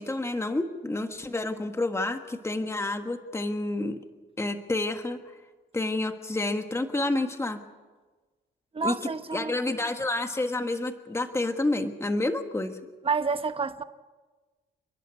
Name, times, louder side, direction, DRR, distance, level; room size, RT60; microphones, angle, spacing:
voice 1, 0.0-4.0 4.4-5.2 5.7-7.6 8.8-8.9 9.3-12.8, left 2 dB, 15° left, 1.5 m, -29 dB
voice 2, 8.7-9.9 13.0-13.8, right 4 dB, 30° right, 1.2 m, -30 dB
29.5 x 11.0 x 9.6 m
cardioid pair, 90°, 20 cm